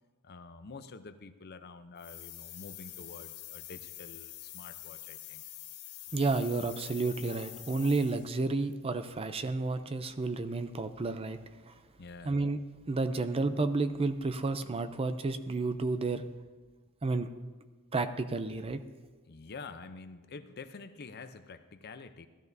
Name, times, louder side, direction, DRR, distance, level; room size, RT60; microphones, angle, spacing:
voice 1, 0.2-5.4 12.0-12.4 19.3-22.3, left 4 dB, 50° left, 10 dB, 0.6 m, -48 dB
sound 1, 2.0-8.4, left 14 dB, 90° left, 0.9 m, -46 dB
voice 2, 6.1-11.4 11.7-11.8 12.2-12.6 12.9-16.2 17.0-17.3 17.9-18.8, right 3 dB, 25° right, 10 dB, 0.4 m, -31 dB
16.0 x 13.0 x 2.7 m, 1.3 s
head